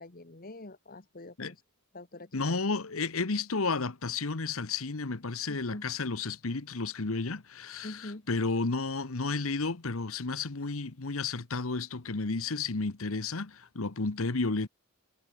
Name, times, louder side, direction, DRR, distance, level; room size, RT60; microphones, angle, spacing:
voice 1, 0.0-1.5 1.9-2.6 5.5-5.8 7.8-8.3, left 2 dB, 40° left, 1.5 m, -45 dB
voice 2, 2.3-14.7, left 3 dB, 70° left, 1.2 m, -32 dB
head